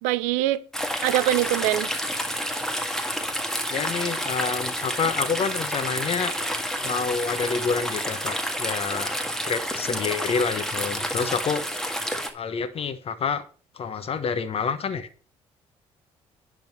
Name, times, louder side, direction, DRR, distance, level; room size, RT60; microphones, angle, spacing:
voice 1, 0.0-0.6 1.0-1.9, right 15 dB, 90° right, 0.5 m, -23 dB
sound 1, 0.7-12.3, equal, 5° left, 1.8 m, -29 dB
voice 2, 3.7-6.3 6.8-9.1 9.4-11.6 12.3-13.4 13.7-15.1, left 5 dB, 50° left, 1.2 m, -28 dB
10.5 x 3.9 x 6.6 m
supercardioid pair, 70°, 13 cm